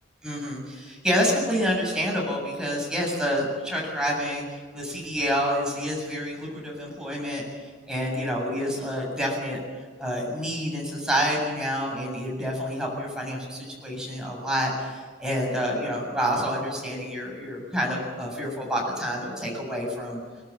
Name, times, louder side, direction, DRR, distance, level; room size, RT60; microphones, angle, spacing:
voice 1, 0.2-7.4 7.9-9.6 10.0-20.2, equal, 5° right, -2 dB, 7.3 m, -28 dB
24.0 x 19.0 x 8.8 m, 1.5 s
head